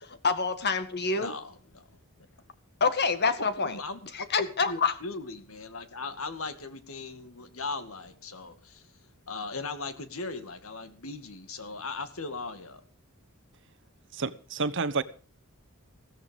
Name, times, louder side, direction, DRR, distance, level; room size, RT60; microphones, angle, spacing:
voice 1, 0.2-1.3 2.8-3.8 4.1-4.9, left 4 dB, 50° left, 1.9 m, -26 dB
voice 2, 1.2-2.0 3.6-8.8 9.3-12.8, left 3 dB, 70° left, 2.1 m, -38 dB
voice 3, 14.1-15.0, right 4 dB, 60° right, 1.1 m, -29 dB
16.5 x 13.5 x 5.2 m
head